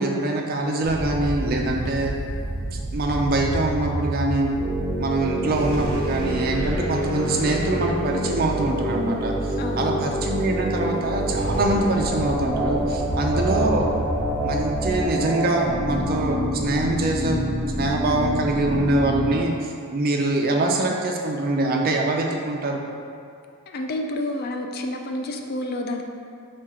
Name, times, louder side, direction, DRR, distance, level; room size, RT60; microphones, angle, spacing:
voice 1, 0.0-2.1 2.7-4.6 5.0-9.3 9.8-13.9 14.4-17.5 17.8-22.8, right 2 dB, 45° right, 1 dB, 0.4 m, -24 dB
sound 1, 0.8-8.0 10.9-15.2, right 1 dB, 80° right, 0.7 m, -30 dB
sound 2, 4.6-19.3, equal, 5° left, 1.1 m, -27 dB
voice 2, 9.6-9.9 23.7-26.0, left 1 dB, 45° left, 3 dB, 0.3 m, -29 dB
4.4 x 2.3 x 4.7 m, 2.3 s
head